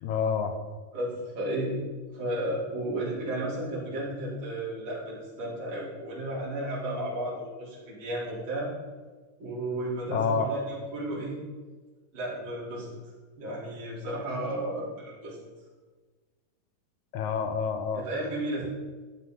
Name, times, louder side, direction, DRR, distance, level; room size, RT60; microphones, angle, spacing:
voice 1, 0.0-0.5 10.1-10.5 17.1-18.0, left 6 dB, 70° left, 7 dB, 2.1 m, -28 dB
voice 2, 0.9-1.8 2.1-8.7 9.4-11.4 12.1-12.9 13.4-15.4 17.9-18.7, right 1 dB, 35° right, -8 dB, 4.2 m, -33 dB
12.0 x 10.0 x 3.9 m, 1.3 s
omnidirectional pair, 3.9 m